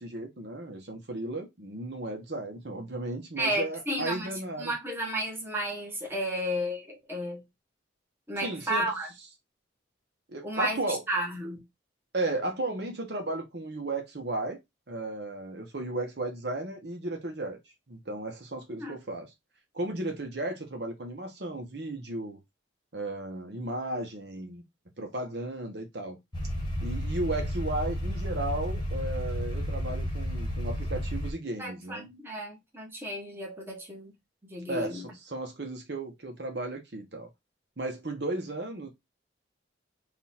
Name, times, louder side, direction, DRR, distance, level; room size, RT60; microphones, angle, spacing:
voice 1, 0.0-4.7 8.4-8.9 10.3-11.0 12.1-14.6 14.9-17.6 17.9-19.3 19.7-22.4 22.9-24.6 25.0-26.2 26.8-32.1 34.7-37.3 37.8-38.9, right 2 dB, 60° right, 1.0 m, -34 dB
voice 2, 3.4-7.4 8.3-9.1 10.4-11.7 18.8-18.9 31.6-34.1 34.4-35.0, right 1 dB, 10° right, 1.0 m, -33 dB
sound 1, 26.3-31.3, equal, 25° left, 1.1 m, -32 dB
3.8 x 2.4 x 4.1 m
head